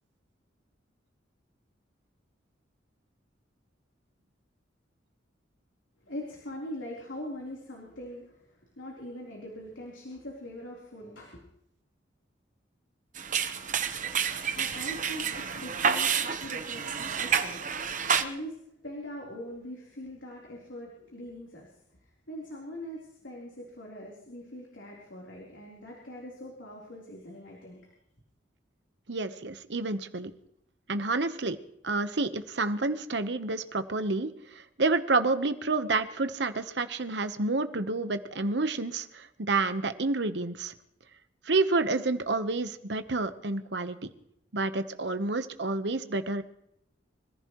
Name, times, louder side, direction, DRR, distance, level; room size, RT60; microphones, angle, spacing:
voice 1, 6.0-11.4 14.5-16.1 16.4-17.6 18.2-18.6 18.8-21.8 22.0-27.9, left 1 dB, 85° left, -3 dB, 3.7 m, -42 dB
sound 1, 13.2-18.2, right 7 dB, 40° right, 1.0 m, -29 dB
voice 2, 29.1-30.3 30.9-31.6 31.8-40.7 41.5-44.0 44.5-46.4, right 3 dB, 65° right, 10 dB, 1.0 m, -29 dB
26.0 x 15.0 x 3.1 m, 0.77 s
head